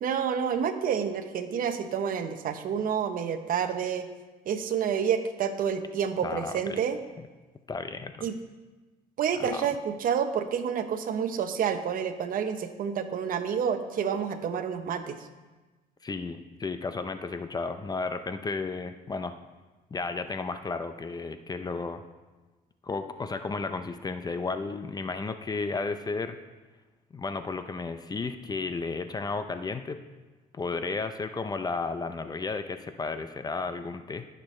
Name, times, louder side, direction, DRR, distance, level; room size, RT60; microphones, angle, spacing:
voice 1, 0.0-4.1 4.5-7.0 8.2-8.3 9.2-15.2, right 7 dB, 55° right, 8 dB, 0.9 m, -29 dB
voice 2, 6.2-6.8 7.2-7.3 7.7-8.3 9.3-9.6 16.0-19.4 19.9-22.0 22.8-26.4 27.1-30.0 30.5-34.3, left 4 dB, 25° left, 9 dB, 0.5 m, -33 dB
17.5 x 6.7 x 3.2 m, 1.2 s
cardioid pair, 110°, 17 cm